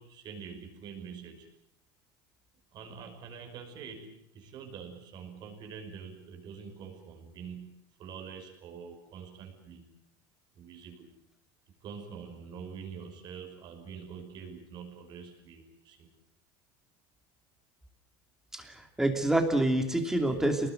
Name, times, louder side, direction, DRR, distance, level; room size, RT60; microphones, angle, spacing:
voice 1, 0.0-1.5 2.7-9.9 10.6-11.1 11.8-16.1, right 6 dB, 35° right, 5 dB, 5.4 m, -45 dB
voice 2, 18.5-20.7, right 1 dB, 5° right, 5 dB, 2.8 m, -27 dB
27.5 x 20.0 x 7.8 m, 0.78 s
cardioid pair, 170°, 12 cm